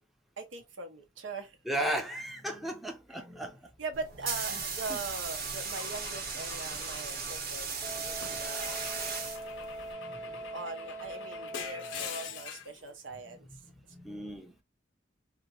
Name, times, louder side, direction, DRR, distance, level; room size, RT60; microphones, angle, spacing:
voice 1, 0.4-1.6 3.8-8.8 10.5-13.5 14.1-14.3, right 3 dB, 85° right, 0.7 m, -41 dB
voice 2, 1.7-3.6 4.5-4.6 4.9-5.0 6.7-6.8 9.0-9.1 9.9-10.5 12.0-12.1 13.3-14.5, right 1 dB, ahead, 0.5 m, -37 dB
sound 1, 3.9-9.9, right 5 dB, 50° right, 0.9 m, -37 dB
Car / Engine / Glass, 5.7-7.9 8.6-12.8, left 7 dB, 75° left, 0.5 m, -45 dB
Wind instrument woodwind instrument, 7.8-12.5, right 1 dB, 20° right, 0.8 m, -42 dB
2.8 x 2.4 x 2.8 m
head